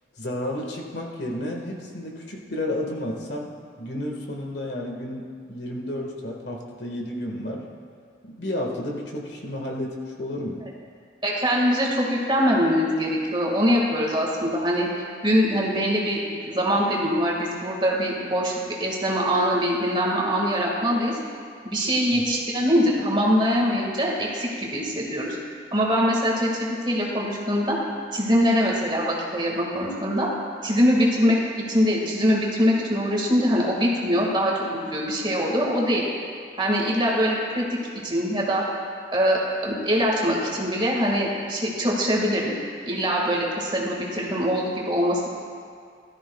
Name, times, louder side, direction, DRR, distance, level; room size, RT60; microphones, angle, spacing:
voice 1, 0.2-7.7 8.2-10.6 22.1-22.2, left 1 dB, 75° left, 0 dB, 1.7 m, -32 dB
voice 2, 11.2-14.9 15.2-21.2 21.6-25.4 25.7-27.8 28.1-30.3 30.6-36.1 36.6-37.6 38.0-38.6 39.1-42.5 42.9-45.3, equal, 25° right, -2 dB, 1.9 m, -23 dB
18.5 x 13.5 x 2.3 m, 2.2 s
head